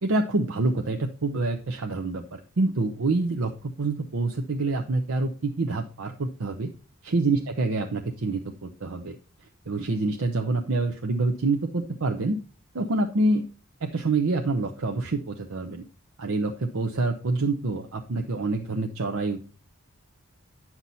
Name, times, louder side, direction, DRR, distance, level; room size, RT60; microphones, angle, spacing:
voice 1, 0.0-6.7 7.0-9.2 9.7-12.4 12.7-13.4 13.8-15.8 16.2-19.4, right 3 dB, 80° right, 3 dB, 0.8 m, -26 dB
9.6 x 5.9 x 4.1 m, 0.37 s
head